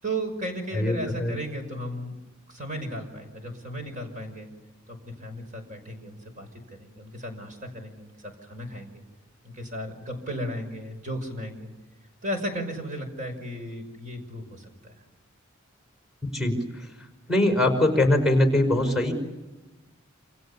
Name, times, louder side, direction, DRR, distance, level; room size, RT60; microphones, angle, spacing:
voice 1, 0.0-2.2 2.5-4.5 4.9-9.0 9.4-11.7 12.2-15.0, right 1 dB, 40° right, 5 dB, 5.8 m, -35 dB
voice 2, 0.7-1.3 16.3-16.9 17.3-19.1, left 1 dB, ahead, 4 dB, 5.4 m, -22 dB
28.5 x 28.0 x 7.1 m, 1.1 s
head